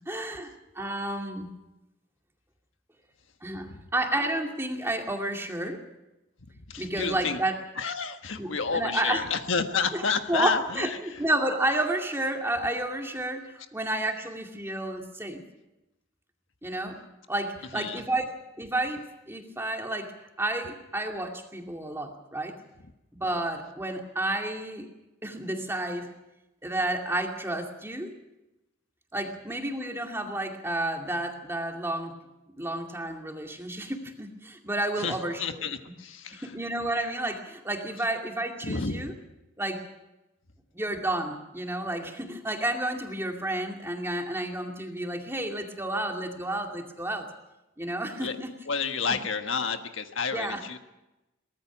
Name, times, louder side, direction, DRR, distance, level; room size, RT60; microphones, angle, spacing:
voice 1, 0.1-0.5 0.7-1.5 3.4-5.8 6.8-7.5 8.4-9.3 9.9-10.0 10.3-13.4 13.7-15.4 16.6-17.0 17.3-18.3 18.6-20.1 20.4-22.6 23.1-24.9 25.2-26.1 26.6-28.1 29.1-32.1 32.6-35.7 36.4-39.1 39.6-39.8 40.7-47.3 47.8-48.5 50.3-50.6, right 1 dB, 10° right, 2 dB, 2.3 m, -31 dB
voice 2, 6.7-7.4 7.8-11.2 13.6-13.7 17.7-18.0 35.0-36.5 38.6-39.1 48.2-48.4 48.7-50.8, left 5 dB, 70° left, 7 dB, 1.4 m, -30 dB
23.0 x 19.0 x 6.2 m, 0.96 s
head